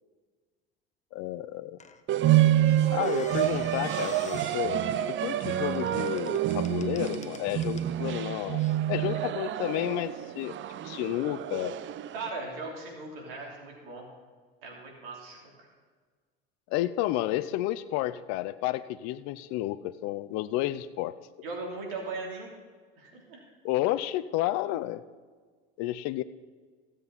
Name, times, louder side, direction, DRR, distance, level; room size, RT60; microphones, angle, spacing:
voice 1, 1.1-1.8 2.9-10.6 10.8-11.8 16.7-21.2 23.6-25.0 25.8-26.2, left 15 dB, 60° left, 15 dB, 0.6 m, -31 dB
Squeak, 1.8-8.0 8.6-8.8, left 6 dB, 25° left, 0.9 m, -50 dB
sound 1, 2.1-12.3, right 12 dB, 40° right, 0.6 m, -28 dB
voice 2, 12.1-14.1 14.6-15.7 21.4-22.5 23.0-23.4, right 3 dB, 75° right, -1 dB, 3.3 m, -38 dB
16.0 x 7.6 x 4.1 m, 1.5 s
hypercardioid pair, 75°, 29 cm